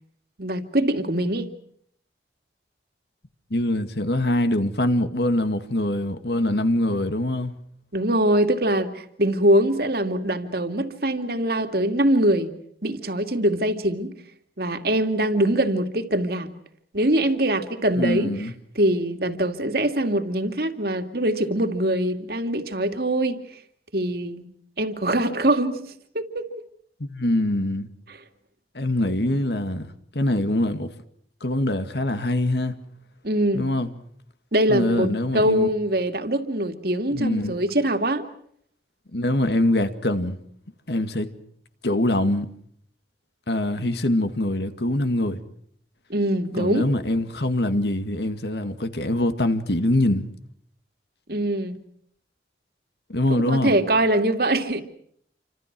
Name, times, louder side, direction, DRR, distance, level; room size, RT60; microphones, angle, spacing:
voice 1, 0.4-1.5 7.9-12.5 12.8-14.1 14.6-16.5 16.9-18.3 18.8-23.4 23.9-24.4 24.8-25.8 26.1-26.5 33.2-33.6 34.5-38.2 46.1-46.9 51.3-51.8 53.3-54.8, right 1 dB, 55° right, 2.4 m, -23 dB
voice 2, 3.5-7.5 18.0-18.5 27.0-27.9 28.7-30.9 31.4-32.8 33.5-33.9 34.7-35.7 37.1-37.6 39.1-40.4 40.9-41.3 41.8-42.5 43.5-45.4 46.5-50.3 53.1-53.8, left 1 dB, 70° left, 2.1 m, -24 dB
28.5 x 26.0 x 6.1 m
head